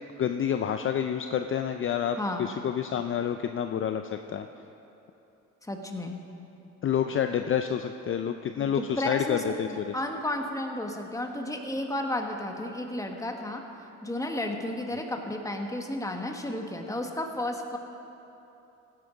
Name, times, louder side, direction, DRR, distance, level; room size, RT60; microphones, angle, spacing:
voice 1, 0.2-4.0 4.3-4.5 6.8-9.9, left 8 dB, 45° left, 7 dB, 0.5 m, -28 dB
voice 2, 2.2-2.5 5.6-6.2 8.6-9.4 9.7-13.6 14.0-17.8, left 1 dB, 10° left, 3 dB, 1.4 m, -32 dB
15.5 x 9.8 x 5.1 m, 3.0 s
cardioid pair, 90°, 30 cm